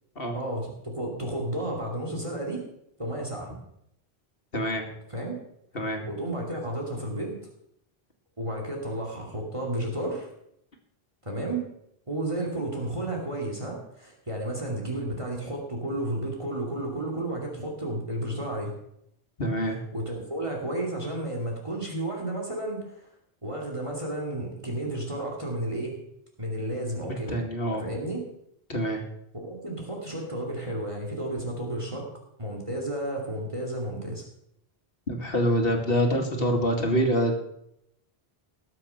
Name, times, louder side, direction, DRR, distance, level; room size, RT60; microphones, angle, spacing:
voice 1, 0.3-2.6 3.0-3.5 5.1-5.4 6.0-7.4 8.4-10.3 11.2-11.7 12.1-18.7 19.9-23.1 23.4-26.0 26.4-27.4 27.7-28.2 29.3-32.1 32.4-34.2, right 1 dB, 30° right, 0 dB, 2.8 m, -32 dB
voice 2, 4.5-4.8 5.7-6.0 19.4-19.8 27.0-27.8 28.7-29.0 35.1-37.4, equal, 65° left, 3 dB, 2.4 m, -26 dB
19.5 x 7.7 x 5.8 m, 0.77 s
omnidirectional pair, 1.0 m